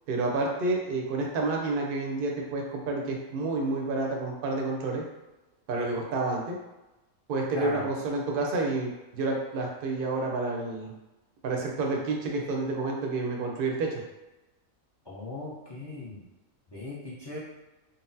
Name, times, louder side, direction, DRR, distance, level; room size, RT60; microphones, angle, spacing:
voice 1, 0.1-5.0 5.7-6.6 7.3-10.9 11.4-14.0, right 3 dB, 55° right, 0 dB, 0.6 m, -29 dB
voice 2, 7.5-7.9 15.1-16.2 16.7-17.4, left 2 dB, 35° left, -8 dB, 0.4 m, -37 dB
3.9 x 2.0 x 2.6 m, 1.0 s
omnidirectional pair, 1.4 m